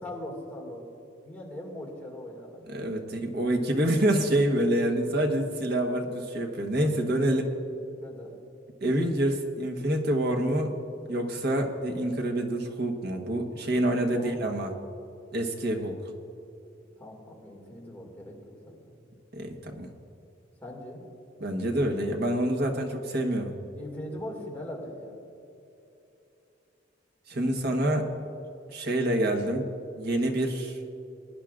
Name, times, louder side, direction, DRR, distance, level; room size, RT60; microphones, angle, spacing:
voice 1, 0.0-0.8 1.2-2.9 7.2-7.4 8.0-8.3 14.1-14.4 17.0-19.0 20.6-21.0 23.7-25.2 27.3-27.5, left 1 dB, 10° left, -3 dB, 2.2 m, -40 dB
voice 2, 2.7-7.4 8.8-10.7 11.1-14.7 15.3-16.0 19.3-19.9 21.4-23.5 27.3-28.1 28.7-29.6 30.0-30.8, right 1 dB, 55° right, 3 dB, 1.2 m, -27 dB
21.5 x 10.0 x 2.5 m, 2.8 s
head